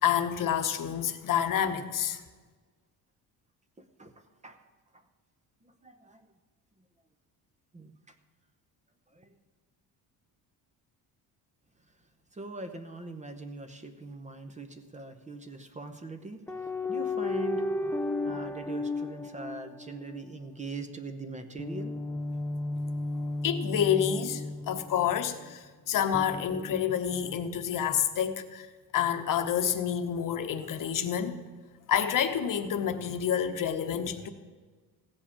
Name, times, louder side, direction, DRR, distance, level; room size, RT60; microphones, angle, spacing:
voice 1, 0.0-2.2 23.4-28.7 28.9-31.4 31.9-34.3, left 9 dB, 55° left, 1.1 m, -28 dB
voice 2, 5.6-6.3 7.7-7.9 9.1-9.4 11.8-12.0 12.3-21.9, right 3 dB, 20° right, 0.8 m, -42 dB
sound 1, 16.5-20.2 21.6-25.3 26.1-27.4, left 2 dB, 5° left, 0.4 m, -33 dB
16.0 x 5.4 x 8.5 m
cardioid pair, 140°, 39 cm